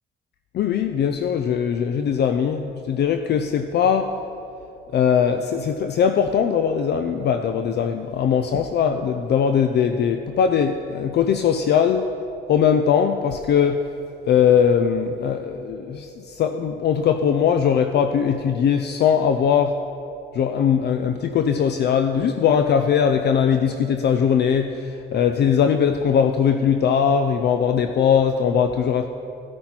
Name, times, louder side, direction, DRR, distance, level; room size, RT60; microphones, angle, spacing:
voice 1, 0.5-4.1 4.9-12.1 12.5-13.8 14.3-19.8 20.3-29.1, left 7 dB, 60° left, 7 dB, 0.4 m, -20 dB
15.0 x 5.9 x 4.3 m, 2.8 s
cardioid pair, 90°, 20 cm